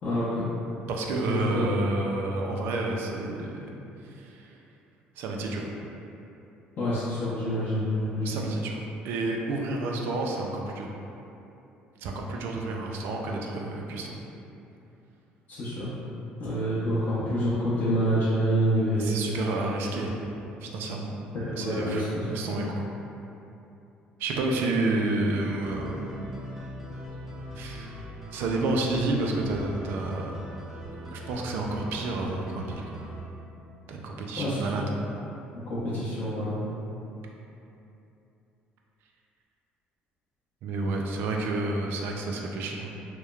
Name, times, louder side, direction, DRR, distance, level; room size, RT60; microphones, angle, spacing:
voice 1, 0.0-0.5 1.3-1.6 6.8-8.4 15.5-15.9 16.4-19.1 21.3-22.2 34.4-34.8 35.7-36.6, equal, 55° left, -11 dB, 0.7 m, -27 dB
voice 2, 0.9-4.5 5.2-5.7 8.2-10.9 12.0-14.1 19.0-20.2 20.6-21.2 21.6-22.8 24.2-26.2 27.6-27.9 28.3-30.4 30.9-32.8 33.9-34.9 40.6-42.9, right 2 dB, 70° right, 0 dB, 0.3 m, -30 dB
sound 1, 25.6-33.2, equal, 10° right, 0.6 m, -41 dB
3.0 x 2.1 x 2.3 m, 2.9 s
supercardioid pair, 75°, 4 cm